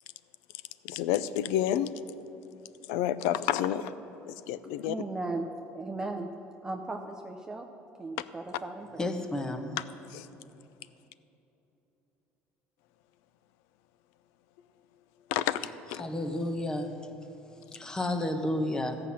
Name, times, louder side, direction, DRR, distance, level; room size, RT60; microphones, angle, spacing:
voice 1, 0.8-1.9 2.9-3.9 4.3-5.0 10.1-10.3 15.3-15.6 15.9-16.0, left 11 dB, 85° left, 15 dB, 0.5 m, -29 dB
voice 2, 4.9-5.5 5.7-6.3 6.6-7.7 8.0-9.0, right 2 dB, 15° right, 3 dB, 0.6 m, -36 dB
voice 3, 9.0-9.8 16.0-17.0 17.7-19.0, left 1 dB, 15° left, 6 dB, 1.0 m, -31 dB
14.5 x 5.8 x 8.6 m, 3.0 s
cardioid pair, 130°, 5 cm